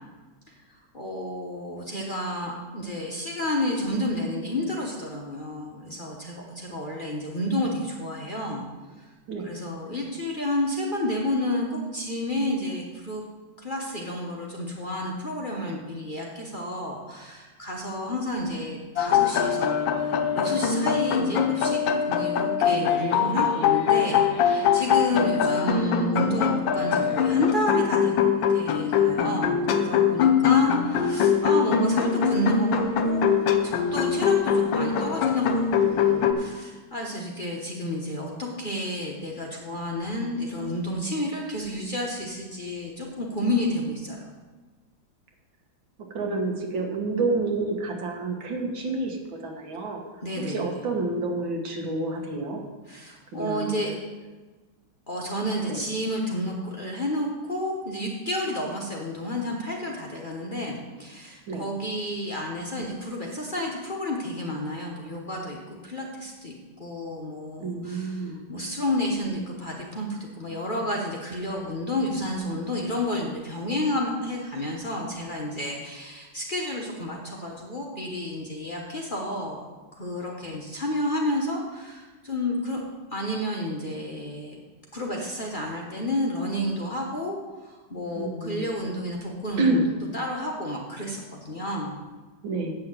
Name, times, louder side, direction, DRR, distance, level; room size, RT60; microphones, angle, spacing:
voice 1, 0.9-8.6 9.0-9.1 9.4-13.2 13.6-19.7 20.0-28.2 28.5-33.3 33.6-44.3 50.2-50.7 52.9-53.9 55.1-65.6 65.8-79.7 79.9-82.8 83.1-84.6 84.9-92.0, left 1 dB, 30° left, -2 dB, 1.1 m, -30 dB
sound 1, 19.0-36.3, left 7 dB, 75° left, 1.5 m, -23 dB
voice 2, 46.1-49.2 49.4-50.0 50.5-52.6 53.3-53.8 55.6-55.8 61.5-61.6 67.6-68.4 88.2-88.7 89.6-89.8 92.4-92.8, right 3 dB, 80° right, 1 dB, 2.3 m, -28 dB
8.2 x 6.3 x 7.7 m, 1.3 s
omnidirectional pair, 2.1 m